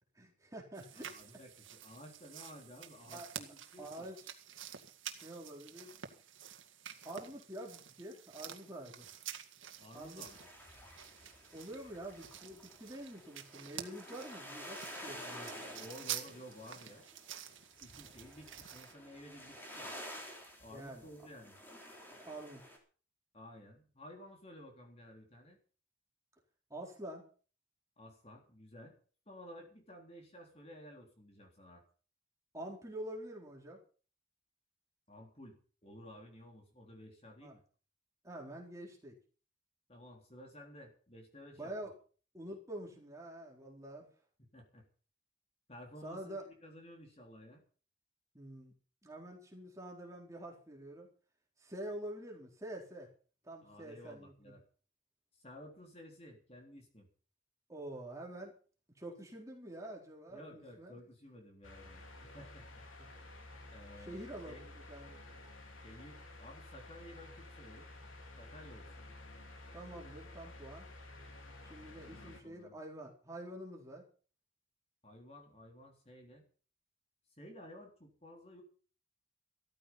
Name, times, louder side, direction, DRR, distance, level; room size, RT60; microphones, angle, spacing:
voice 1, 0.2-1.1 3.1-3.3 3.8-4.2 5.2-5.9 7.0-9.2 9.9-10.2 11.5-15.5 20.7-21.1 22.2-22.6 26.7-27.2 32.5-33.8 37.4-37.5 38.2-39.2 41.5-41.9 42.3-44.1 46.0-46.4 48.3-48.7 49.0-51.1 51.6-53.1 53.4-54.5 57.7-58.5 59.0-61.0 64.0-65.2 69.7-70.9 71.6-74.0, right 1 dB, 15° right, -1 dB, 4.1 m, -47 dB
sound 1, 0.7-18.9, right 10 dB, 80° right, 2.1 m, -49 dB
voice 2, 0.9-4.1 9.8-10.4 15.7-17.1 17.8-19.9 20.6-21.6 23.3-25.6 28.0-29.0 29.3-31.8 35.1-37.6 39.9-41.7 44.4-44.9 45.7-47.6 53.6-54.6 55.4-57.1 60.3-62.1 62.3-62.7 63.7-64.6 65.8-67.9 68.4-69.1 72.0-72.8 75.0-76.5 77.4-78.6, left 1 dB, 30° left, 2 dB, 3.6 m, -54 dB
sound 2, 9.9-22.8, equal, 10° left, 3.9 m, -51 dB
sound 3, 61.6-72.4, left 2 dB, 85° left, 3.6 m, -52 dB
15.0 x 14.0 x 5.8 m, 0.41 s
head